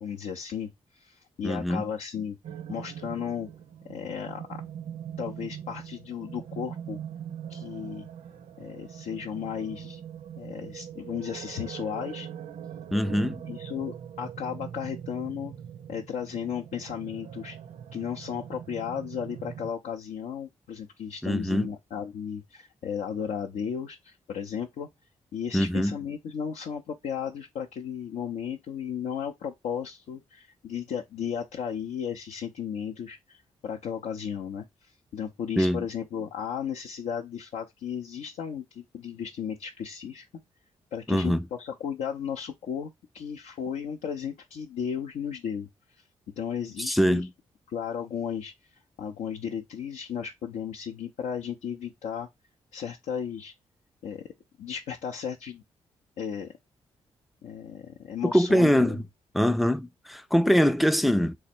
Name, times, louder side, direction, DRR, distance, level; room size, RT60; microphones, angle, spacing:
voice 1, 0.0-2.4 2.7-3.5 3.8-4.6 5.2-7.0 7.5-8.1 8.6-10.0 10.4-12.3 13.5-15.5 15.9-17.6 17.9-24.9 25.3-40.3 40.9-45.7 46.4-47.2 47.7-48.5 49.0-52.3 52.7-53.5 54.0-54.2 54.6-55.6 56.2-56.5 57.4-59.0, left 8 dB, 75° left, 0.5 m, -35 dB
voice 2, 1.4-1.9 12.9-13.4 21.2-21.7 25.5-26.0 35.6-35.9 41.1-41.5 46.8-47.3 58.3-59.0 59.3-61.4, equal, ahead, 0.3 m, -23 dB
sound 1, 2.4-19.7, right 9 dB, 70° right, 0.4 m, -41 dB
3.2 x 2.0 x 4.2 m
supercardioid pair, 45°, 12 cm